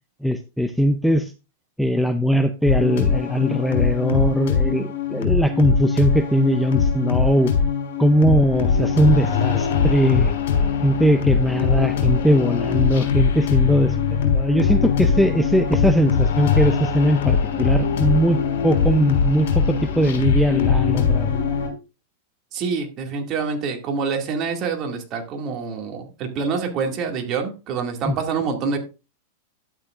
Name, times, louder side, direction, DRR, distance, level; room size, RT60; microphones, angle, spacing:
voice 1, 0.2-1.3 1.8-7.5 8.0-10.3 10.8-21.3 28.0-28.1, equal, ahead, 7 dB, 0.5 m, -20 dB
sound 1, 2.7-21.7, left 6 dB, 75° left, 3.7 m, -21 dB
voice 2, 22.5-28.8, right 5 dB, 35° right, 3 dB, 2.2 m, -26 dB
12.0 x 8.7 x 2.5 m, 0.30 s
supercardioid pair, 145°, 0 cm